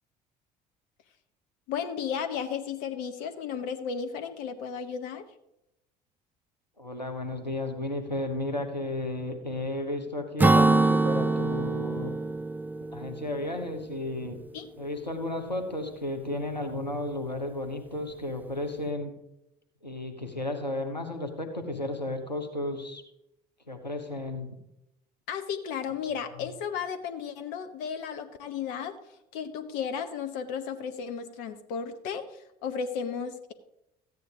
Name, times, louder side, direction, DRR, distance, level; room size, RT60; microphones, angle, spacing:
voice 1, 1.7-5.2 14.5-14.7 25.3-29.0 29.3-33.5, left 7 dB, 55° left, 8 dB, 1.0 m, -34 dB
voice 2, 6.8-12.1 12.9-14.4 14.8-19.1 19.8-23.0 23.7-24.5, left 2 dB, 90° left, 5 dB, 1.1 m, -33 dB
Acoustic guitar / Strum, 10.4-14.0, right 3 dB, 10° right, 0.4 m, -24 dB
14.5 x 9.3 x 3.6 m, 0.85 s
figure-of-eight pair, 55°, 21 cm